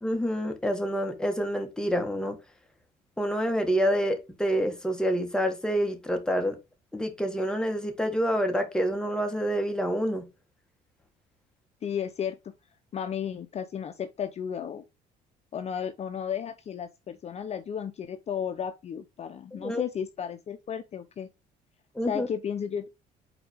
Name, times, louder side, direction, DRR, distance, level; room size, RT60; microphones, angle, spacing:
voice 1, 0.0-2.4 3.2-6.6 6.9-10.3 19.5-19.8 21.9-22.3, equal, 5° left, 1.5 m, -27 dB
voice 2, 11.8-12.4 12.9-14.8 15.5-21.3 22.0-22.9, left 8 dB, 40° left, 0.6 m, -33 dB
4.9 x 4.4 x 4.9 m
cardioid pair, 110°, 17 cm